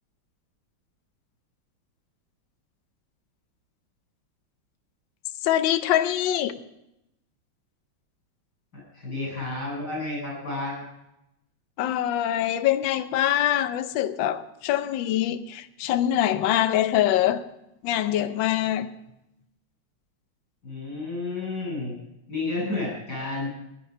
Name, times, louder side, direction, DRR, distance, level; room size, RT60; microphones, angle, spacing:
voice 1, 5.4-6.6 11.8-17.5 17.8-18.9, left 12 dB, 70° left, 1.4 m, -24 dB
voice 2, 8.9-10.8 20.6-21.9 22.3-23.5, left 2 dB, 50° left, 8.4 m, -31 dB
15.5 x 11.5 x 5.4 m
omnidirectional pair, 2.3 m